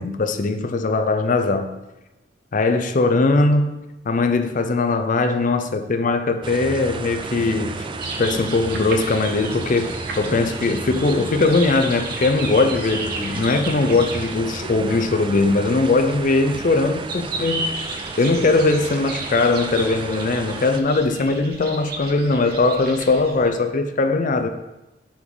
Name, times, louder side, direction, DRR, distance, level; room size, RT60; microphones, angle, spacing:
voice 1, 0.0-1.7 2.5-7.9 8.2-17.7 18.2-24.5, left 3 dB, 45° left, 0.5 m, -20 dB
sound 1, 6.4-20.8, right 3 dB, 30° right, 0.3 m, -33 dB
sound 2, 8.0-23.5, right 2 dB, 60° right, 0.9 m, -34 dB
8.6 x 3.8 x 3.9 m
head